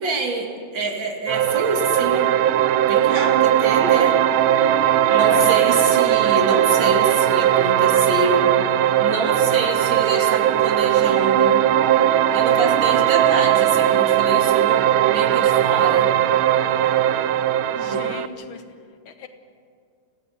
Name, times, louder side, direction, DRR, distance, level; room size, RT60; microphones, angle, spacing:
voice 1, 0.0-2.3 2.9-4.2 5.1-8.5 9.0-11.6 12.3-14.8 15.1-16.1 17.9-18.0, right 2 dB, 65° right, 2 dB, 3.1 m, -26 dB
sound 1, 1.3-18.3, right 11 dB, 90° right, 1.5 m, -18 dB
voice 2, 5.1-5.6 17.7-18.6 19.1-19.3, left 6 dB, 80° left, 7 dB, 2.3 m, -32 dB
26.0 x 16.5 x 7.9 m, 2.2 s
omnidirectional pair, 2.2 m